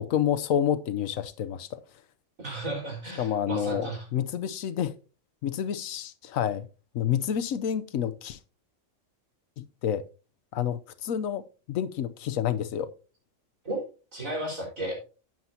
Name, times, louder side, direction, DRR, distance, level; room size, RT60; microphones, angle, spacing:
voice 1, 0.0-1.8 3.2-5.0 5.4-6.7 6.9-8.4 9.6-10.0 10.5-11.4 11.7-12.9, left 9 dB, 90° left, 1.2 m, -29 dB
voice 2, 2.4-4.0 13.6-13.8 14.1-15.0, right 1 dB, 85° right, 5.0 m, -33 dB
12.0 x 9.1 x 2.7 m
omnidirectional pair, 1.4 m